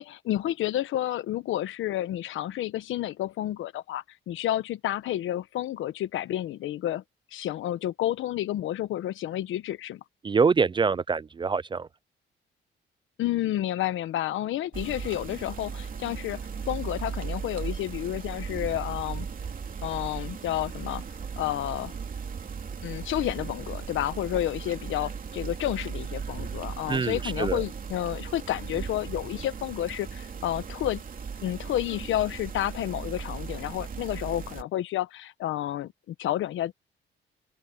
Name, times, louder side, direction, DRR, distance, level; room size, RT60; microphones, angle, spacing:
voice 1, 0.0-7.0 7.3-10.0 13.2-16.4 16.7-19.3 19.8-21.0 21.4-21.9 22.8-31.0 31.4-36.7, left 13 dB, 80° left, 1.1 m, -30 dB
voice 2, 10.2-11.9 26.9-27.6, right 5 dB, 25° right, 0.4 m, -25 dB
sound 1, 14.7-34.6, right 6 dB, 45° right, 3.0 m, -37 dB
open air
cardioid pair, 90°, 20 cm